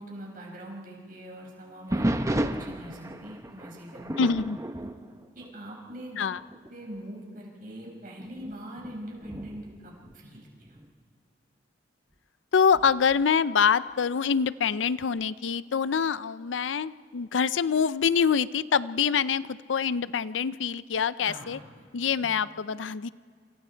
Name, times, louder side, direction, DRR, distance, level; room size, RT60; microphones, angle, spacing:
voice 1, 0.0-4.1 4.8-4.9 5.3-6.2 6.7-10.8 21.2-21.6 22.2-22.4, right 1 dB, 50° right, -1 dB, 5.5 m, -43 dB
sound 1, 1.9-6.0 6.4-6.7 7.3-7.4 8.2-10.9 12.7-13.2, right 1 dB, 15° right, 0.9 m, -33 dB
voice 2, 4.2-4.6 6.2-6.4 12.5-21.6 21.9-23.1, left 6 dB, 90° left, 17 dB, 0.5 m, -25 dB
27.5 x 27.0 x 4.5 m, 2.1 s
head